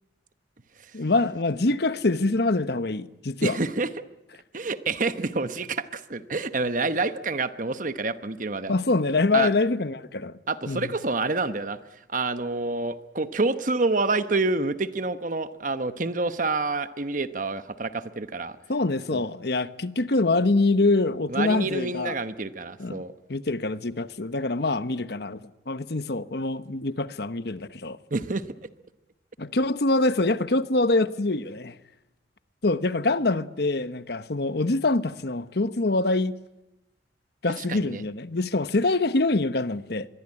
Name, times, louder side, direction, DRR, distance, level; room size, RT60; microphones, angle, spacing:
voice 1, 0.9-3.6 8.7-10.4 10.7-10.9 18.7-22.1 22.8-23.0 23.3-25.4 25.7-28.0 29.4-31.7 32.6-36.3 37.4-40.1, left 2 dB, 60° left, 1.1 m, -25 dB
voice 2, 3.4-3.9 4.5-8.8 9.3-9.5 10.5-11.8 12.1-18.6 19.1-19.2 21.3-23.1 28.1-28.4 37.6-38.0, right 3 dB, 45° right, 1.1 m, -28 dB
24.5 x 22.5 x 9.9 m
head